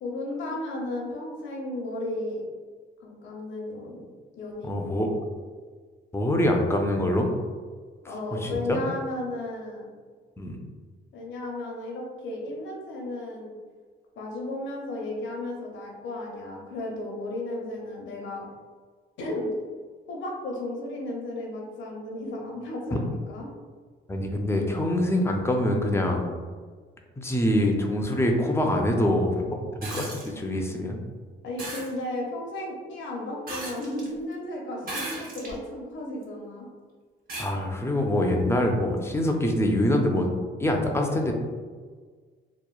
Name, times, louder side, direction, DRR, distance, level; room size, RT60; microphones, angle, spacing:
voice 1, 0.0-2.4 3.0-4.1 4.4-5.0 8.1-9.9 11.1-13.5 14.2-18.5 19.2-19.5 20.1-23.5 31.4-36.7, left 1 dB, 70° left, -1 dB, 0.7 m, -34 dB
voice 2, 4.6-5.1 6.1-7.3 8.0-8.8 10.4-10.6 22.9-23.0 24.1-26.2 27.2-29.6 29.9-31.0 37.4-40.3 40.6-41.3, left 1 dB, 15° left, 2 dB, 0.4 m, -25 dB
sound 1, 29.8-30.3 31.6-31.9 33.5-34.1 34.8-35.6 36.2-36.3 37.3-37.5 39.0-39.1, right 2 dB, 45° right, 0.8 m, -35 dB
2.9 x 2.0 x 2.3 m, 1.5 s
cardioid pair, 90°, 20 cm